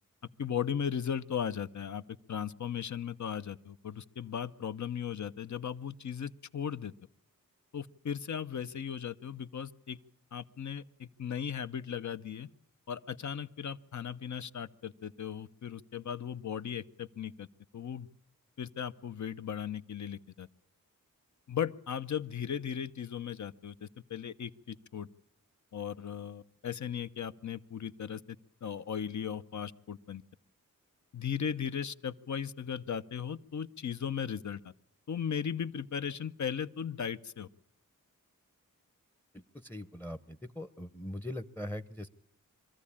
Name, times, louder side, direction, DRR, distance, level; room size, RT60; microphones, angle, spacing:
voice 1, 0.4-2.0 2.3-6.9 7.7-10.0 10.3-12.5 12.9-17.5 17.7-18.1 18.6-20.5 21.5-25.1 25.7-28.2 28.6-30.2 31.1-34.6 35.1-37.5, left 8 dB, 60° left, 12 dB, 0.7 m, -37 dB
voice 2, 39.3-42.1, left 1 dB, 5° left, 15 dB, 0.8 m, -41 dB
23.0 x 14.0 x 8.6 m, 0.71 s
wide cardioid pair, 65°, 33 cm